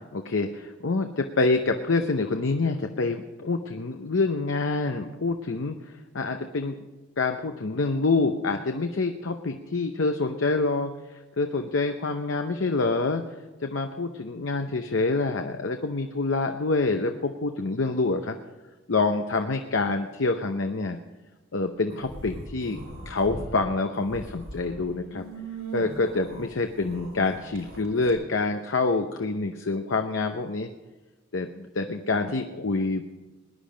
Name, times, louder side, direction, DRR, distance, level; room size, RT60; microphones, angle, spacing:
voice 1, 0.1-6.8 7.2-10.9 11.4-13.2 13.6-18.4 18.9-21.0 21.5-22.8 23.1-25.2 25.7-30.7 31.3-33.1, left 3 dB, 65° left, 5 dB, 0.7 m, -26 dB
sound 1, 21.9-23.5 23.9-28.1, right 2 dB, 80° right, 3.6 m, -40 dB
20.0 x 10.5 x 5.1 m, 1.2 s
head